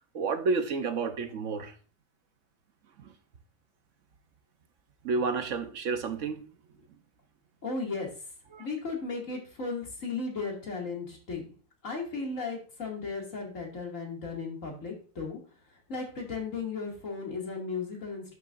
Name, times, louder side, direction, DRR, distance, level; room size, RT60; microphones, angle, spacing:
voice 1, 0.1-1.7 3.0-3.1 5.0-6.4 8.5-8.7, right 4 dB, 70° right, 9 dB, 1.2 m, -30 dB
voice 2, 7.6-8.1 8.6-11.4 11.8-15.4 15.9-18.3, left 4 dB, 70° left, -1 dB, 2.7 m, -35 dB
11.5 x 6.7 x 2.5 m, 0.39 s
omnidirectional pair, 1.4 m